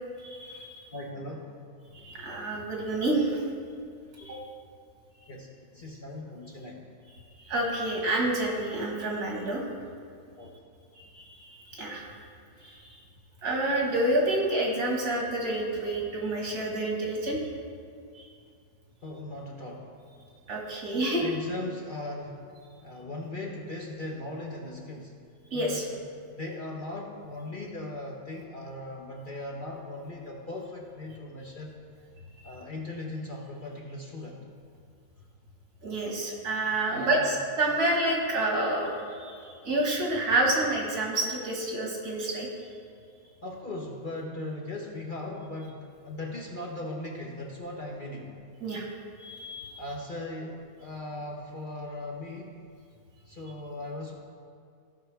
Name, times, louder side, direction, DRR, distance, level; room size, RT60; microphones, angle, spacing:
voice 1, 0.2-0.8 1.9-3.4 4.2-4.4 7.4-9.6 11.0-12.1 12.6-12.9 13.4-17.4 18.1-18.2 20.5-21.2 25.5-25.8 32.4-32.5 35.8-42.5 48.6-48.8 49.2-49.7, right 2 dB, 80° right, -2 dB, 2.3 m, -28 dB
voice 2, 0.9-1.5 5.3-6.8 10.4-10.5 19.0-19.9 21.2-22.4 22.8-25.1 25.5-26.0 26.3-31.8 32.4-34.4 36.9-37.4 43.4-48.3 49.8-52.6 53.3-54.1, left 2 dB, 40° left, -2 dB, 0.9 m, -38 dB
15.5 x 5.9 x 3.3 m, 2.3 s
omnidirectional pair, 1.6 m